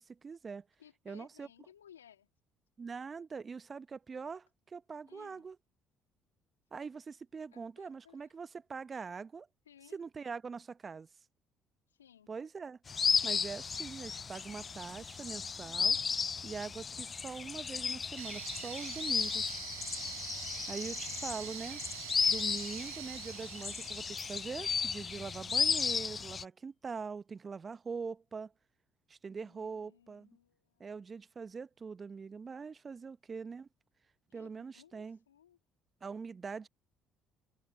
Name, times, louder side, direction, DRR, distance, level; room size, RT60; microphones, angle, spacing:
voice 1, 0.0-0.7 1.1-1.5 2.8-5.6 6.7-9.5 9.9-11.1 12.3-12.8 13.2-16.0 16.4-19.6 20.7-21.8 22.3-28.5 29.1-30.3 30.8-33.7 34.3-35.2 36.0-36.7, right 5 dB, 35° right, 0.8 m, -43 dB
voice 2, 0.8-2.3 5.1-5.5 7.5-8.4 9.7-10.0 11.9-12.3 24.6-24.7 29.4-30.9 34.3-35.6, left 9 dB, 90° left, 2.6 m, -61 dB
sound 1, 12.9-26.4, left 5 dB, 35° left, 0.3 m, -34 dB
sound 2, 18.2-25.1, right 14 dB, 85° right, 0.9 m, -46 dB
sound 3, 24.2-25.7, left 1 dB, 5° left, 7.8 m, -62 dB
hypercardioid pair, 55°, 0 cm